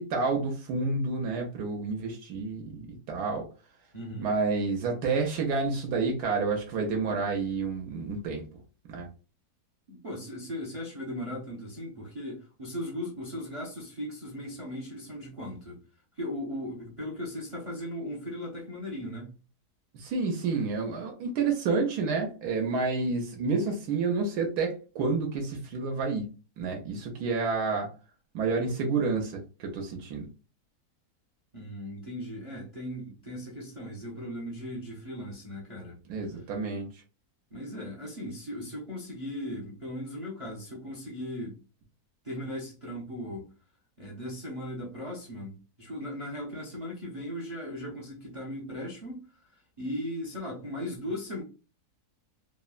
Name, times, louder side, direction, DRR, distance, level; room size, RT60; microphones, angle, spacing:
voice 1, 0.0-3.5 4.2-8.4 8.9-9.1 19.9-26.3 26.6-27.9 28.3-30.3 36.1-36.9, right 4 dB, 80° right, 1.1 m, -29 dB
voice 2, 3.9-4.3 9.9-15.8 16.2-19.3 31.5-36.0 36.3-36.4 37.5-41.6 42.2-43.5 44.0-51.4, left 1 dB, 50° right, 0.4 m, -38 dB
3.2 x 2.1 x 2.3 m
omnidirectional pair, 1.7 m